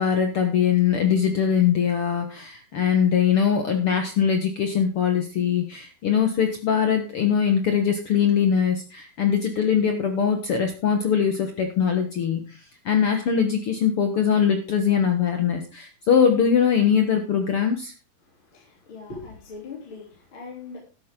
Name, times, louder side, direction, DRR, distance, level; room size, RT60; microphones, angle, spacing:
voice 1, 0.0-12.6 12.8-17.9, left 7 dB, 65° left, 5 dB, 1.4 m, -22 dB
voice 2, 18.2-20.8, left 4 dB, 35° left, -3 dB, 3.8 m, -40 dB
13.0 x 10.5 x 3.8 m, 0.33 s
omnidirectional pair, 4.3 m